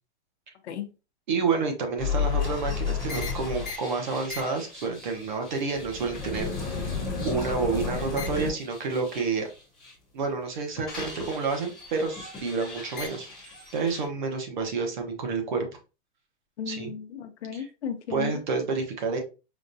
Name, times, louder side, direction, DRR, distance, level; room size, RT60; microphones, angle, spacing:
voice 1, 1.3-6.9 7.2-9.5 10.1-15.7 16.7-16.9 17.5-17.7 18.1-19.2, right 4 dB, 45° right, 3 dB, 1.0 m, -29 dB
sound 1, 2.0-9.9 10.3-14.0, left 5 dB, ahead, 0.5 m, -33 dB
voice 2, 16.6-18.4, left 7 dB, 80° left, 8 dB, 0.7 m, -35 dB
5.1 x 2.4 x 2.6 m, 0.31 s
hypercardioid pair, 175°, 34 cm